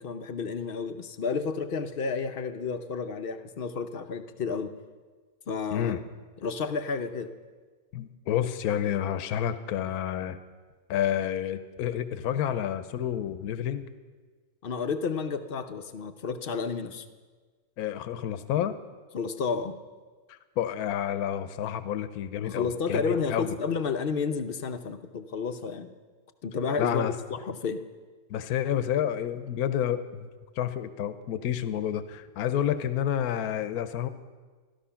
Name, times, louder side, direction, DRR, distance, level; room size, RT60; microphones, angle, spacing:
voice 1, 0.0-4.7 5.5-6.0 6.4-7.3 14.6-17.0 19.1-19.8 22.4-25.9 26.4-27.8, left 5 dB, 55° left, 9 dB, 0.6 m, -31 dB
voice 2, 7.9-10.4 10.9-13.9 17.8-18.8 20.3-23.5 26.8-27.1 28.3-30.3 30.6-34.1, left 10 dB, 80° left, 11 dB, 1.1 m, -29 dB
14.5 x 12.5 x 5.7 m, 1.4 s
omnidirectional pair, 1.6 m